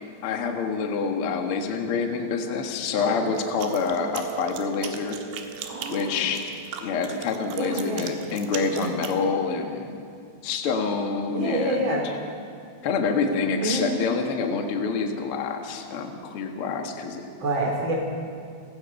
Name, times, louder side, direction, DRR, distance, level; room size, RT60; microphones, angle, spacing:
voice 1, 0.2-5.2 5.9-6.4 6.8-10.0 10.4-12.1 12.8-17.2, left 5 dB, 80° left, 4 dB, 1.2 m, -27 dB
sound 1, 3.0-9.5, right 7 dB, 50° right, 2.2 m, -40 dB
sound 2, 3.4-9.2, right 8 dB, 85° right, 3.6 m, -39 dB
voice 2, 5.7-6.3 7.5-8.1 8.7-8.9 11.3-12.0 13.6-13.9 17.4-17.9, right 1 dB, 30° right, -1 dB, 3.8 m, -27 dB
30.0 x 15.5 x 5.5 m, 2.4 s
omnidirectional pair, 5.2 m